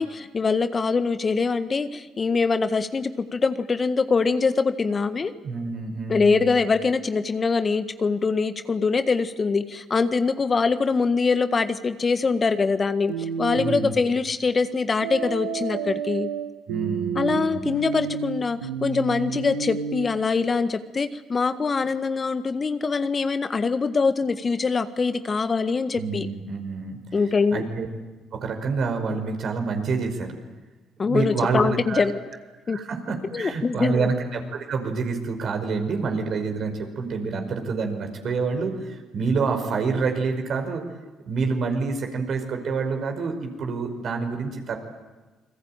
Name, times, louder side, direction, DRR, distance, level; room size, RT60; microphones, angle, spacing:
voice 1, 0.0-5.3 6.1-16.3 17.1-26.3 27.1-27.6 31.0-32.2 32.7-32.8 33.3-34.1, left 4 dB, 40° left, 10 dB, 1.6 m, -23 dB
voice 2, 5.4-6.5 13.6-13.9 16.7-17.6 25.9-27.0 27.5-27.9 28.3-30.3 31.0-32.1 32.7-40.8 41.3-44.8, right 4 dB, 60° right, 4 dB, 5.4 m, -27 dB
sound 1, 13.1-13.9 15.0-20.1, right 6 dB, 90° right, 1.7 m, -30 dB
28.5 x 21.0 x 9.0 m, 1.2 s
hypercardioid pair, 50°, 0 cm